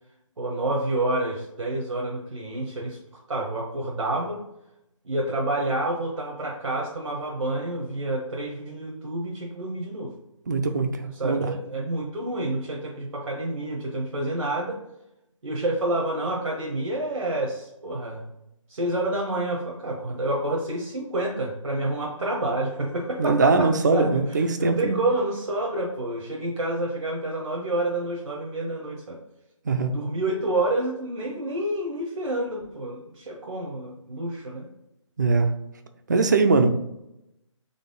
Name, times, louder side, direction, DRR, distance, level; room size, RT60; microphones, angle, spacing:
voice 1, 0.4-3.0 3.3-4.4 5.0-10.1 11.1-14.8 15.4-18.2 18.7-24.2 24.6-29.2 29.9-34.7, right 1 dB, 75° right, 0 dB, 0.9 m, -28 dB
voice 2, 10.5-11.5 23.2-25.0 29.7-29.9 35.2-35.5 36.1-36.7, right 3 dB, 35° right, 8 dB, 0.4 m, -21 dB
4.0 x 3.4 x 3.7 m, 0.86 s
figure-of-eight pair, 155°, 17 cm